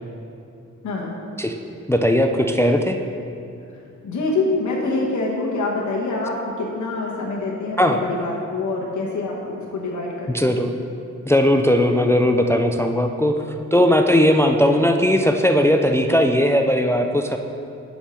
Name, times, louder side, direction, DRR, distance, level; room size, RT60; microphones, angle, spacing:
voice 1, 1.9-3.0 7.8-8.0 10.3-10.7 11.3-13.4 13.7-17.4, equal, 10° left, 4 dB, 0.3 m, -18 dB
voice 2, 4.0-10.6, left 3 dB, 75° left, -3 dB, 1.2 m, -25 dB
7.0 x 5.4 x 6.2 m, 2.7 s
wide cardioid pair, 135°, 29 cm